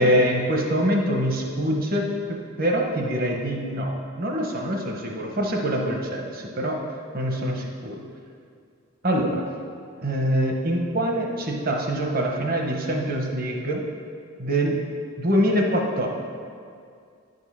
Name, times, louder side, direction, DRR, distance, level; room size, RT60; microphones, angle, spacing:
voice 1, 0.0-6.8 7.1-8.0 9.0-9.4 10.0-13.8 14.4-14.8 15.2-16.1, equal, 40° right, 1 dB, 1.0 m, -24 dB
10.0 x 5.5 x 5.5 m, 2.3 s
head